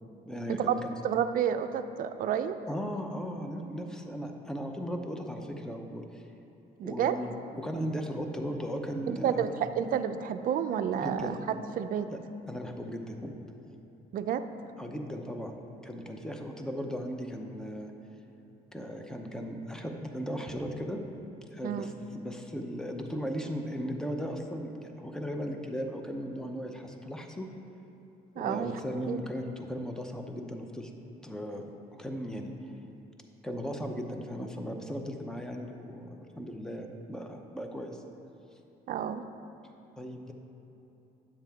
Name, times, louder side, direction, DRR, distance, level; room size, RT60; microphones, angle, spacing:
voice 1, 0.2-0.8 2.7-6.2 6.8-9.5 11.0-11.4 12.1-12.2 12.5-13.3 14.8-15.5 15.8-17.9 18.7-21.0 21.5-27.5 28.4-30.9 31.2-32.7 33.4-38.0 40.0-40.3, equal, 5° left, 3 dB, 0.7 m, -37 dB
voice 2, 1.0-2.5 6.8-7.1 9.1-11.4 11.8-12.1 14.1-14.4 21.6-21.9 28.4-28.8 29.1-29.2 38.9-39.2, right 9 dB, 55° right, 9 dB, 0.5 m, -30 dB
9.9 x 7.4 x 3.6 m, 3.0 s
cardioid pair, 110°, 17 cm